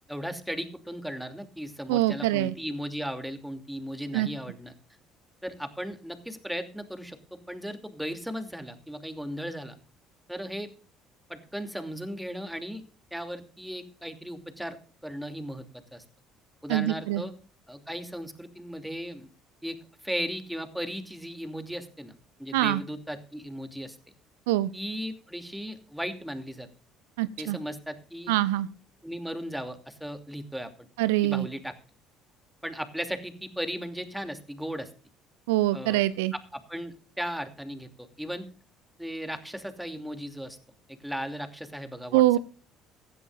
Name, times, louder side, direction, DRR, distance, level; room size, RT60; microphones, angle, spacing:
voice 1, 0.1-4.7 5.4-9.8 10.3-10.7 11.3-12.8 13.1-14.8 15.0-15.7 15.9-16.0 16.6-17.3 17.7-19.3 19.6-19.8 20.0-22.1 22.4-24.0 24.7-26.7 27.4-28.3 29.0-30.7 31.2-31.7 32.6-34.9 35.7-36.0 36.3-38.5 39.0-40.6 40.9-42.2, equal, ahead, 7 dB, 2.8 m, -36 dB
voice 2, 1.9-2.5 4.1-4.3 16.7-17.2 22.5-22.8 24.5-24.7 27.2-27.6 28.3-28.7 31.0-31.5 35.5-36.3 42.1-42.4, right 16 dB, 65° right, 17 dB, 0.5 m, -24 dB
16.5 x 15.5 x 2.5 m, 0.39 s
figure-of-eight pair, 55°, 0 cm